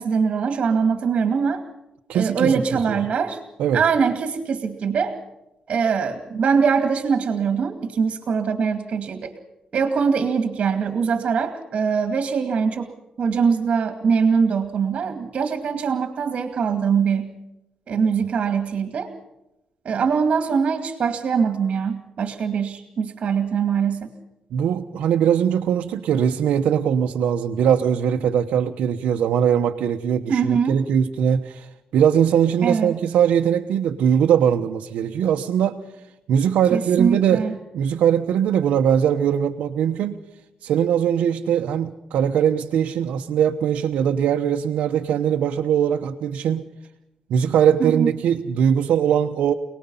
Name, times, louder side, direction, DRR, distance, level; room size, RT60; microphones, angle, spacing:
voice 1, 0.0-1.6 2.1-3.4 3.7-5.2 5.7-9.3 9.7-12.9 13.2-17.3 17.9-19.1 19.8-24.1 30.3-30.8 32.6-32.9 36.7-37.6 47.8-48.1, right 6 dB, 55° right, 7 dB, 2.3 m, -22 dB
voice 2, 2.1-2.5 3.6-3.8 24.5-35.8 36.3-37.4 37.7-40.2 40.6-46.7 47.3-49.5, right 8 dB, 85° right, 3 dB, 1.1 m, -21 dB
28.5 x 19.5 x 5.7 m, 0.91 s
cardioid pair, 100°, 2 cm